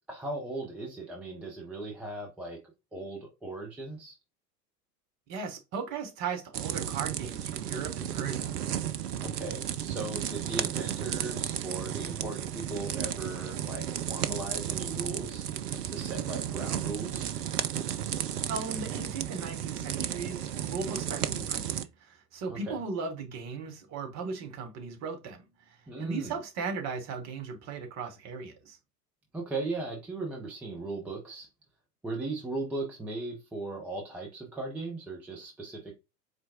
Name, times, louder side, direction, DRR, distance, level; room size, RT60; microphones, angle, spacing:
voice 1, 0.1-2.6 2.9-4.2 9.2-15.5 15.9-17.3 22.5-22.8 25.9-26.4 29.3-31.5 32.0-36.0, right 2 dB, 5° right, 0.4 m, -37 dB
voice 2, 5.3-8.6 18.5-28.8, right 5 dB, 35° right, 1.3 m, -37 dB
sound 1, 6.5-21.8, right 10 dB, 65° right, 0.6 m, -33 dB
4.3 x 3.4 x 2.7 m
figure-of-eight pair, 85°, 50 cm